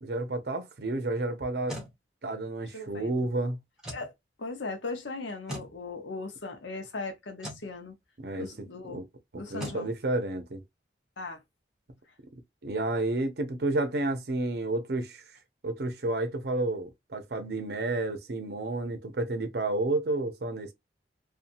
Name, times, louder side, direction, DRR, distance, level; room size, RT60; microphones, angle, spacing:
voice 1, 0.0-1.8 2.2-3.6 8.2-8.5 8.9-9.1 9.3-10.6 12.6-15.2 15.6-20.7, right 2 dB, 60° right, 0.6 m, -31 dB
sound 1, 1.4-1.9 3.8-4.1 5.5-5.7 7.4-7.7 9.6-9.8, equal, 5° right, 0.8 m, -39 dB
voice 2, 2.7-3.1 3.9-4.1 4.4-7.9 8.4-9.0 9.3-9.9 11.2-11.4, left 3 dB, 80° left, 0.8 m, -38 dB
2.7 x 2.3 x 2.5 m
head